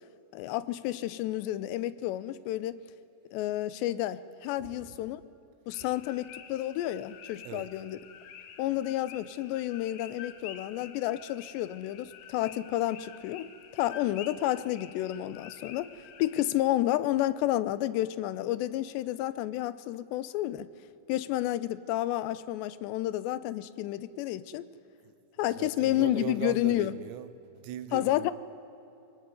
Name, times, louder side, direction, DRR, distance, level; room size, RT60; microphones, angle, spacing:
voice 1, 0.3-2.8 3.3-5.2 5.7-8.0 8.6-13.5 13.7-15.9 16.2-20.7 21.1-24.7 25.4-26.9 27.9-28.3, left 14 dB, 85° left, 16 dB, 3.0 m, -30 dB
voice 2, 4.6-5.0 7.4-7.7 25.0-25.1 25.5-28.3, right 11 dB, 85° right, 13 dB, 3.1 m, -40 dB
sound 1, 5.7-16.4, left 8 dB, 70° left, 2.9 m, -49 dB
23.0 x 19.5 x 9.4 m, 2.9 s
omnidirectional pair, 4.9 m